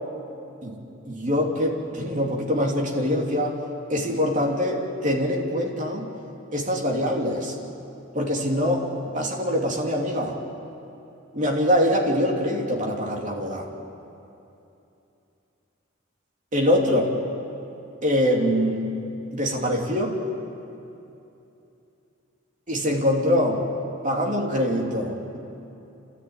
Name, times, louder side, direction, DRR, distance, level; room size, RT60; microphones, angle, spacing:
voice 1, 0.6-3.6 3.9-6.1 6.5-7.5 8.1-8.9 9.1-10.4 11.3-13.7 16.5-17.1 18.0-18.9 19.3-20.2 22.7-23.6 24.0-25.4, equal, 35° right, -1 dB, 3.0 m, -24 dB
30.0 x 13.5 x 9.0 m, 2.9 s
head